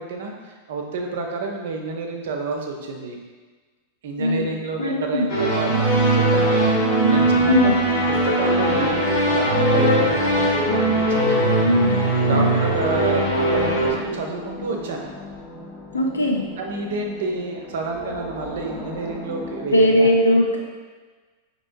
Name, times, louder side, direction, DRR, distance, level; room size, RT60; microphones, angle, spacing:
voice 1, 0.0-3.2 4.0-6.7 7.1-11.9 12.2-15.1 16.6-20.1, right 3 dB, 60° right, 1 dB, 0.6 m, -29 dB
voice 2, 4.2-4.5 4.8-5.3 7.4-7.8 11.6-12.0 12.3-12.5 15.9-16.5 19.7-20.6, left 1 dB, 75° left, 1 dB, 0.5 m, -19 dB
sound 1, 5.3-13.9, right 1 dB, 55° left, 0.9 m, -20 dB
sound 2, 11.9-19.7, left 2 dB, 30° left, 0.6 m, -37 dB
5.3 x 3.0 x 2.6 m, 1.4 s
figure-of-eight pair, 90°, 0 cm